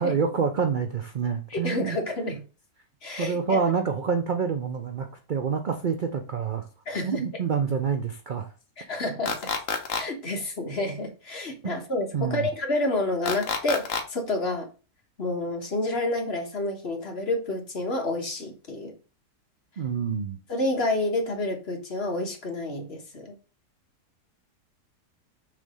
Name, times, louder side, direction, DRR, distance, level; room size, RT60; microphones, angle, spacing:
voice 1, 0.0-2.0 3.2-6.7 7.0-8.5 11.6-11.7 12.1-12.5 19.8-20.4, right 6 dB, 70° right, 6 dB, 0.4 m, -27 dB
voice 2, 1.5-2.4 3.0-3.6 6.9-7.2 8.8-9.4 9.9-14.7 15.2-18.9 20.5-23.3, left 2 dB, 40° left, 3 dB, 1.5 m, -29 dB
sound 1, 9.3-10.0 13.3-14.0, left 5 dB, 55° left, 1.3 m, -28 dB
6.5 x 3.4 x 5.5 m, 0.34 s
omnidirectional pair, 1.8 m